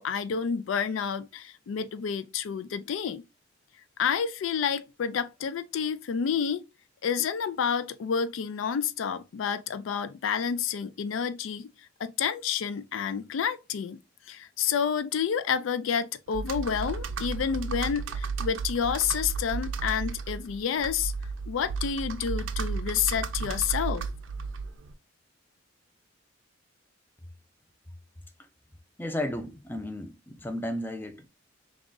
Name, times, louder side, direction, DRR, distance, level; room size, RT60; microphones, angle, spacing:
voice 1, 0.0-3.2 4.0-6.6 7.0-11.7 12.0-14.0 14.3-21.1 21.5-24.0, left 7 dB, 90° left, 0.4 m, -29 dB
Computer keyboard, 16.3-24.9, right 4 dB, 80° right, 0.4 m, -33 dB
voice 2, 29.0-31.3, left 1 dB, 10° left, 0.4 m, -34 dB
3.6 x 2.4 x 3.8 m
head